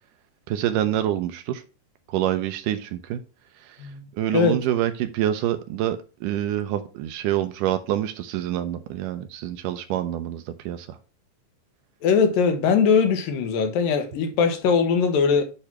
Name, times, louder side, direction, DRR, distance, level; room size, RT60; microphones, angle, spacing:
voice 1, 0.5-1.6 2.1-3.2 4.2-10.9, right 12 dB, 80° right, 2.1 m, -26 dB
voice 2, 12.0-15.4, left 6 dB, 80° left, 2.7 m, -20 dB
8.4 x 3.3 x 5.8 m
omnidirectional pair, 4.0 m